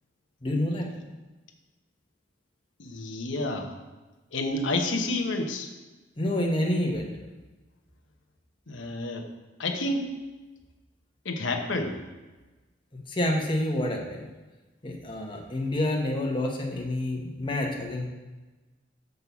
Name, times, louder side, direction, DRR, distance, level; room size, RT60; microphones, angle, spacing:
voice 1, 0.4-0.9 6.2-7.1 13.1-14.3 14.8-18.1, left 1 dB, 25° left, 0 dB, 1.1 m, -28 dB
voice 2, 2.8-3.7 4.3-5.7 8.7-9.2 9.6-10.1 11.2-11.9, left 2 dB, 75° left, 3 dB, 1.0 m, -29 dB
6.3 x 5.4 x 7.0 m, 1.2 s
head